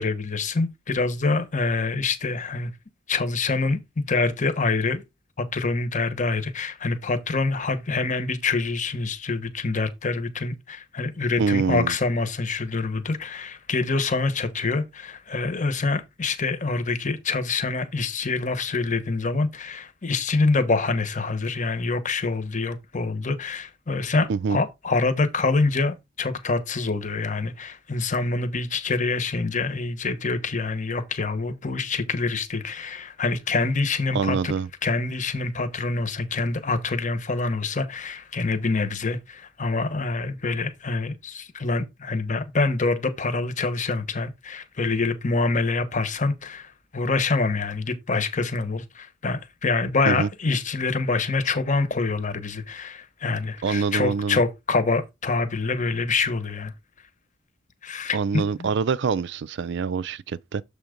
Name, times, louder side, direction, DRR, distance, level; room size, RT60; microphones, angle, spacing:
voice 1, 0.0-2.7 3.1-5.0 5.4-34.5 34.8-56.7 57.8-58.7, left 3 dB, 40° left, 1.0 m, -26 dB
voice 2, 11.4-11.9 24.3-24.6 34.1-34.7 50.1-50.3 53.6-54.4 58.1-60.6, right 5 dB, 60° right, 0.4 m, -25 dB
7.1 x 3.5 x 5.0 m
head